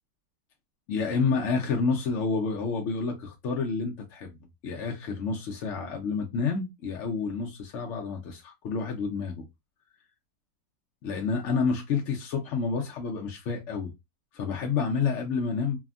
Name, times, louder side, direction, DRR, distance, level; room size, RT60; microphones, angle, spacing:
voice 1, 0.9-4.3 4.6-9.5 11.0-13.9 14.3-15.8, left 5 dB, 75° left, 0.6 m, -29 dB
3.3 x 2.1 x 2.3 m
omnidirectional pair, 2.0 m